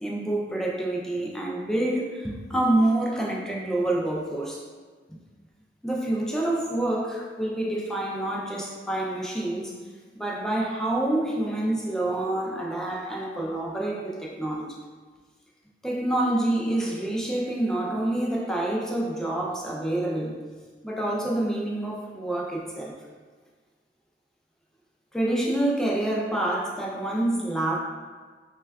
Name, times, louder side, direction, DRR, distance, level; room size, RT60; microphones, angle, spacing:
voice 1, 0.0-4.6 5.8-9.7 10.2-14.8 15.8-20.4 20.8-22.9 25.1-27.8, right 1 dB, 5° left, -2 dB, 0.3 m, -27 dB
4.2 x 2.2 x 2.2 m, 1.5 s
head